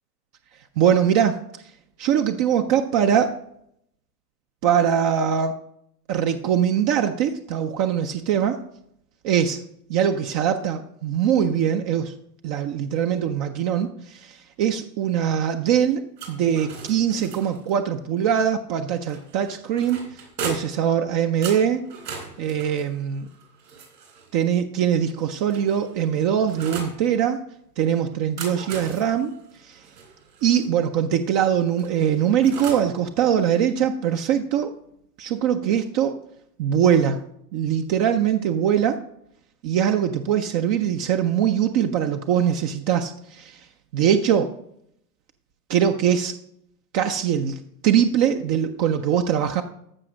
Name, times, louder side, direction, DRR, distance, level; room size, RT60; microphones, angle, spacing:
voice 1, 0.8-1.4 2.0-3.4 4.6-5.5 6.1-8.6 9.2-9.6 9.9-12.1 12.4-20.0 20.4-21.8 22.4-23.3 24.3-27.4 27.8-29.3 29.6-29.7 30.4-34.7 35.2-36.2 36.6-37.2 37.5-39.0 39.6-43.6 43.9-44.5 45.7-46.3 46.9-49.6, right 9 dB, 25° right, 6 dB, 0.3 m, -22 dB
sound 1, 16.2-17.7 19.1-20.9 21.4-24.3 25.2-27.0 28.1-30.7 31.8-32.9, right 4 dB, 80° right, 4.3 m, -38 dB
14.0 x 5.5 x 6.2 m, 0.74 s
hypercardioid pair, 110°, 48 cm